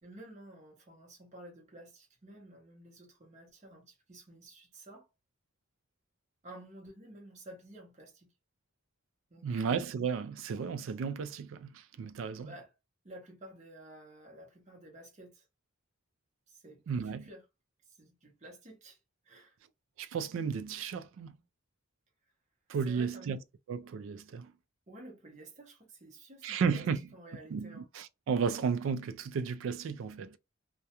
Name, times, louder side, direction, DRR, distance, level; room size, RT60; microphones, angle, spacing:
voice 1, 0.0-5.1 6.4-8.3 9.3-9.7 12.4-12.7 13.0-15.4 16.5-17.4 18.0-19.0 19.2-19.6 22.9-23.4 24.9-27.9, right 1 dB, 35° right, 0.8 m, -52 dB
voice 2, 9.4-12.5 16.9-17.2 20.0-21.4 22.7-23.4 23.7-24.5 26.4-27.0 27.5-30.4, right 6 dB, 75° right, 0.3 m, -33 dB
2.3 x 2.1 x 2.8 m
head